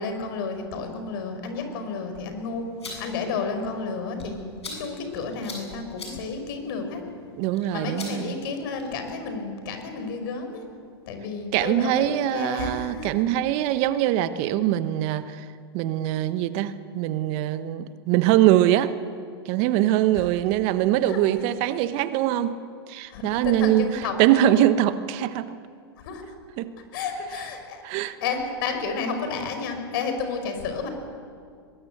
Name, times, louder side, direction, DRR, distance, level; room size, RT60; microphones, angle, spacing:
voice 1, 0.0-2.7 3.0-7.0 7.7-10.7 11.1-13.2 20.1-20.2 21.1-21.2 23.1-24.8 26.0-26.3 26.9-30.9, left 4 dB, 60° left, 7 dB, 5.1 m, -31 dB
sound 1, 2.6-9.1, left 3 dB, 85° left, 7.9 m, -44 dB
voice 2, 7.4-8.3 11.5-15.5 15.7-18.9 19.4-22.6 22.9-23.9 24.2-25.6 26.6-26.7 27.8-28.2, right 13 dB, 45° right, 13 dB, 1.1 m, -23 dB
23.0 x 21.0 x 8.0 m, 2.2 s
hypercardioid pair, 110°, 14 cm